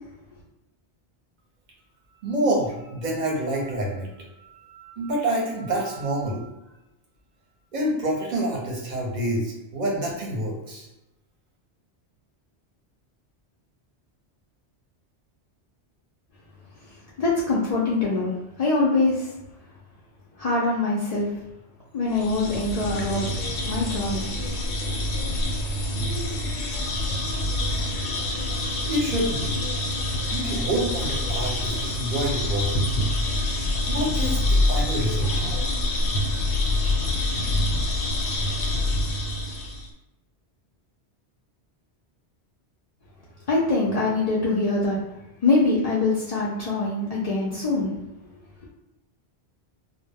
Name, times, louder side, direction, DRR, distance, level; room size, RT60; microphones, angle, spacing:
voice 1, 2.2-6.5 7.7-10.9 28.9-29.6 30.3-33.0 33.9-35.3, right 1 dB, 50° right, -2 dB, 0.7 m, -27 dB
voice 2, 16.9-19.3 20.4-21.3 21.9-23.3 23.7-24.3 24.8-25.0 43.5-45.0 45.4-48.0, left 3 dB, 60° left, -5 dB, 0.4 m, -24 dB
sound 1, 22.1-39.9, left 1 dB, 90° left, 0.9 m, -26 dB
2.1 x 2.1 x 3.3 m, 0.94 s
omnidirectional pair, 1.1 m